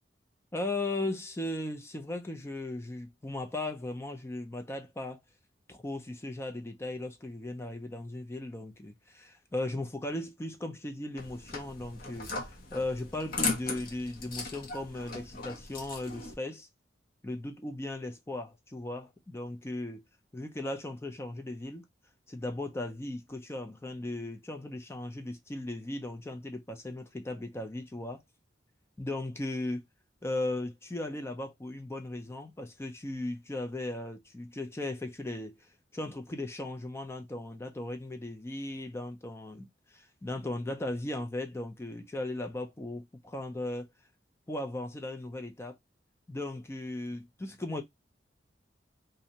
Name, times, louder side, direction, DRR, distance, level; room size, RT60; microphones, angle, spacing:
voice 1, 0.5-5.2 5.7-12.3 12.7-16.7 17.2-20.0 20.3-21.8 22.3-28.2 29.0-29.8 30.2-35.5 35.9-43.9 44.5-45.8 46.3-47.8, left 2 dB, 15° left, 0.4 m, -37 dB
sound 1, 11.2-16.3, left 3 dB, 55° left, 0.8 m, -37 dB
2.5 x 2.1 x 2.8 m
head